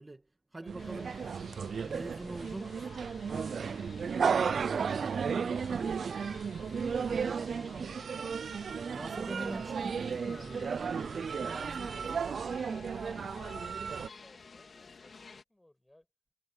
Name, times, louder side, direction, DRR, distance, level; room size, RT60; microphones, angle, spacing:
voice 1, 0.0-1.3 1.8-3.0 3.6-3.7 4.8-5.7 8.9-13.2, right 2 dB, 25° right, 1.9 m, -45 dB
voice 2, 0.6-1.3 2.2-4.3 7.1-8.0 13.5-16.1, left 1 dB, 15° left, 7.1 m, -61 dB
sound 1, 0.7-14.1, right 6 dB, 80° right, 0.4 m, -34 dB
sound 2, 0.8-15.4, left 4 dB, 65° left, 2.0 m, -53 dB
wide cardioid pair, 85°, 0 cm